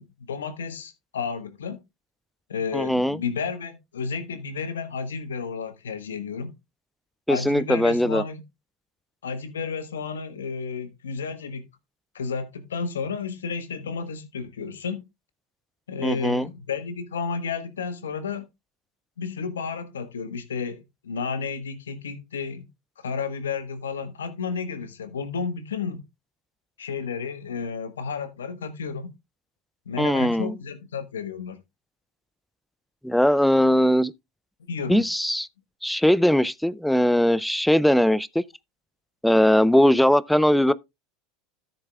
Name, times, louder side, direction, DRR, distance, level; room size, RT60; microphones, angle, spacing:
voice 1, 0.0-1.8 2.5-6.5 7.3-8.4 9.2-11.6 12.1-15.0 15.9-18.4 19.2-22.6 23.0-26.0 26.8-29.1 29.9-31.6 34.7-35.0, left 5 dB, 85° left, 1.3 m, -32 dB
voice 2, 2.7-3.2 7.3-8.2 16.0-16.5 30.0-30.6 33.0-34.1 34.9-35.5 35.8-38.4 39.2-40.7, equal, ahead, 0.4 m, -20 dB
13.0 x 7.4 x 2.3 m
hypercardioid pair, 85°, 0 cm